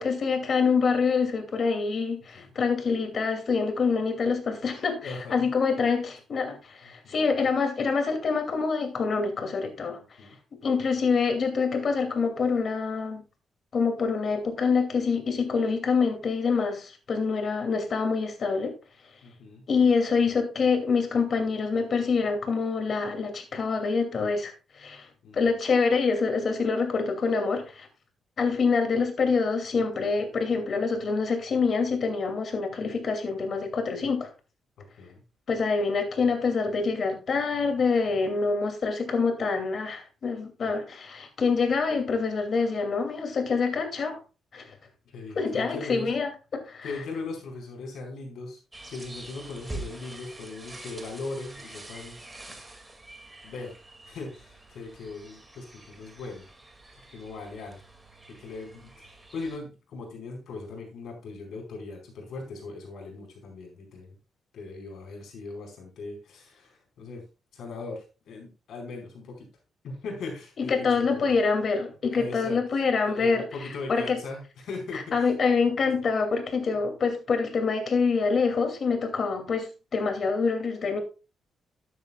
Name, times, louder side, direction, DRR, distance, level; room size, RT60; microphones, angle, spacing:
voice 1, 0.0-10.0 10.6-13.2 13.7-18.7 19.7-25.1 25.3-27.9 28.4-34.3 35.5-44.2 44.5-44.7 45.4-46.9 70.6-73.5 73.9-74.2 74.9-81.0, left 5 dB, 50° left, 5 dB, 2.6 m, -26 dB
voice 2, 5.0-5.5 7.0-7.2 10.2-10.4 19.2-19.6 25.2-25.5 35.0-35.2 40.6-40.7 45.0-46.1 46.8-48.6 48.9-52.2 52.5-52.6 53.4-53.7 54.1-56.4 57.1-57.8 58.3-64.1 64.5-67.2 67.5-69.5 69.8-71.4 72.1-72.6 73.1-75.3, left 3 dB, 75° left, 1 dB, 4.7 m, -39 dB
sound 1, 48.7-59.6, right 2 dB, 15° right, 2.3 m, -45 dB
13.5 x 9.5 x 2.4 m, 0.31 s
cardioid pair, 105°, 0 cm